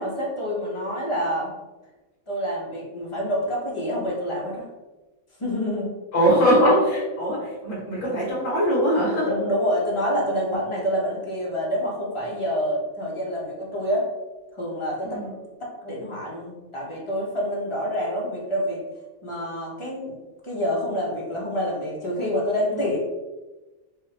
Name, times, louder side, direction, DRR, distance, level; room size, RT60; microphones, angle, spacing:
voice 1, 0.0-1.5 2.3-4.6 5.4-5.9 9.2-14.1 14.6-15.3 15.6-18.8 19.2-20.2 20.4-23.0, equal, 25° left, -4 dB, 0.8 m, -27 dB
voice 2, 6.1-9.3 15.0-15.3 22.7-22.8, equal, 65° left, -10 dB, 1.6 m, -21 dB
4.9 x 2.2 x 2.9 m, 1.1 s
omnidirectional pair, 1.4 m